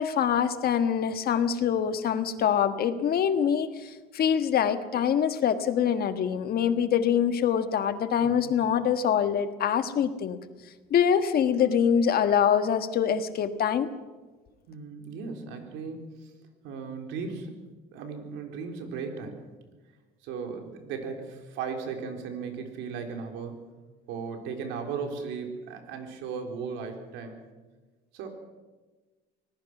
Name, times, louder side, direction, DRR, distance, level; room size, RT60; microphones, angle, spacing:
voice 1, 0.0-10.4 10.9-13.9, left 8 dB, 55° left, 9 dB, 1.6 m, -24 dB
voice 2, 8.2-8.6 14.7-16.3 16.6-17.5 17.9-19.5 20.2-23.6 24.1-27.4 28.1-28.3, right 5 dB, 85° right, 4 dB, 3.9 m, -36 dB
26.0 x 19.0 x 6.1 m, 1.3 s
cardioid pair, 115°, 19 cm